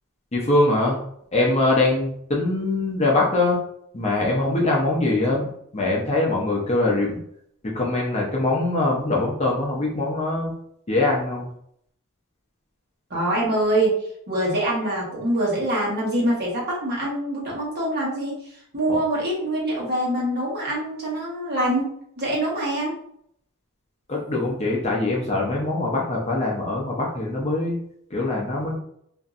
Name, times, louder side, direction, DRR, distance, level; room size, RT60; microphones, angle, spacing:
voice 1, 0.3-1.0 1.3-3.6 3.9-5.5 5.7-7.2 7.7-10.5 10.9-11.5 18.9-19.0 24.1-27.8 28.1-28.8, left 2 dB, 30° left, -2 dB, 0.5 m, -22 dB
voice 2, 13.1-14.0 14.3-23.0, right 1 dB, 45° right, -5 dB, 1.1 m, -24 dB
2.9 x 2.6 x 2.4 m, 0.69 s
head